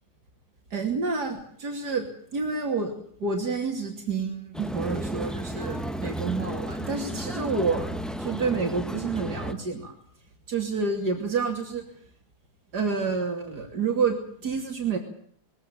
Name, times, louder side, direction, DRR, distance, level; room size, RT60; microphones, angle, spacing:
voice 1, 0.7-2.9 3.2-9.9 10.5-11.8 12.7-15.0, right 4 dB, 80° right, 2 dB, 3.3 m, -29 dB
sound 1, 4.5-9.5, equal, ahead, 1.1 m, -33 dB
22.0 x 17.0 x 9.0 m, 0.62 s
omnidirectional pair, 1.7 m